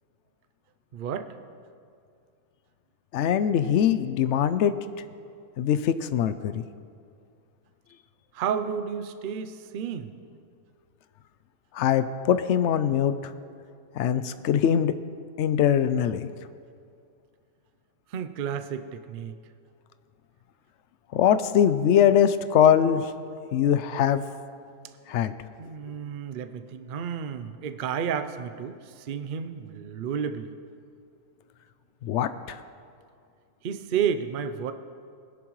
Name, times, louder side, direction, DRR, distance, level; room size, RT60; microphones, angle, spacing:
voice 1, 0.9-1.3 8.3-10.1 18.1-19.3 25.6-30.5 33.6-34.7, right 7 dB, 75° right, 9 dB, 0.4 m, -31 dB
voice 2, 3.1-4.7 5.6-6.6 11.7-13.1 14.0-14.9 15.4-16.2 21.1-23.1 23.5-24.2 25.1-25.3 32.0-32.6, left 9 dB, 70° left, 12 dB, 0.6 m, -22 dB
20.0 x 11.0 x 3.1 m, 2.3 s
omnidirectional pair, 1.7 m